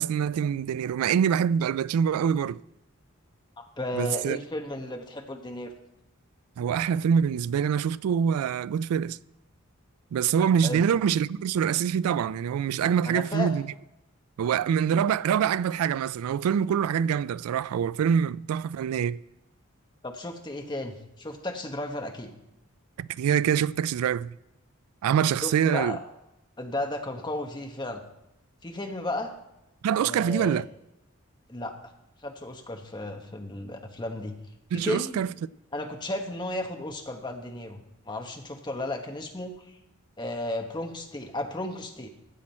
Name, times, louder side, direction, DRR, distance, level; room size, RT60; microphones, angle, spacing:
voice 1, 0.0-2.6 3.9-4.4 6.6-9.2 10.1-13.6 14.4-19.2 23.0-24.3 25.0-26.0 29.8-30.7 34.7-35.3, right 8 dB, 90° right, 0.3 m, -25 dB
voice 2, 3.6-5.7 10.6-10.8 13.1-13.5 20.0-22.3 25.4-26.0 26.6-28.0 28.6-29.3 29.9-30.6 31.5-31.8 32.2-34.4 34.7-35.2 35.7-39.8 40.2-42.1, left 1 dB, 20° left, 0.9 m, -34 dB
15.0 x 7.3 x 4.3 m
head